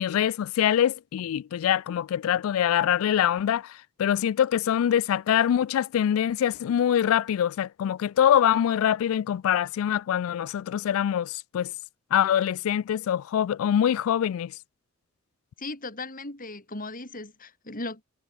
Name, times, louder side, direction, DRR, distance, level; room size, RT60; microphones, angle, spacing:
voice 1, 0.0-3.7 4.0-11.7 12.1-14.5, left 9 dB, 80° left, 0.3 m, -24 dB
voice 2, 15.6-18.0, left 2 dB, 40° left, 7.7 m, -37 dB
head